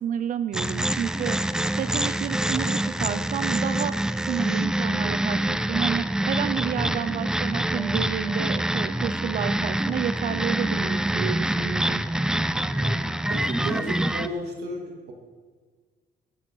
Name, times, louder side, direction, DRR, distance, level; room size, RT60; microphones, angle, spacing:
voice 1, 0.0-12.0, right 9 dB, 50° right, 12 dB, 0.6 m, -31 dB
sound 1, 0.5-14.3, right 1 dB, 5° right, 0.5 m, -26 dB
voice 2, 12.3-13.0 13.3-15.1, right 1 dB, 75° right, 1 dB, 2.6 m, -34 dB
21.0 x 9.3 x 4.8 m, 1.5 s
cardioid pair, 110°, 17 cm